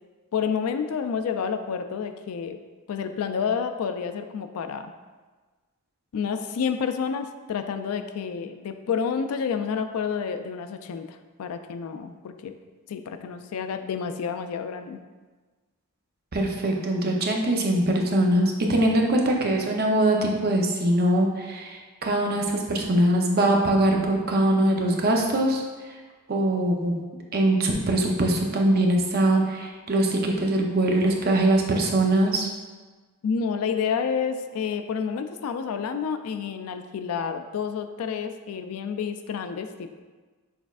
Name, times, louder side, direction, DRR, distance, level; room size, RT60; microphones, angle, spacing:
voice 1, 0.3-2.6 2.9-4.9 6.1-12.5 12.9-15.0 19.1-19.2 33.2-40.0, left 6 dB, 75° left, 8 dB, 0.3 m, -29 dB
voice 2, 16.3-26.0 26.3-27.0 27.3-32.5, right 1 dB, 45° right, 1 dB, 0.6 m, -22 dB
6.3 x 3.4 x 2.4 m, 1.3 s
head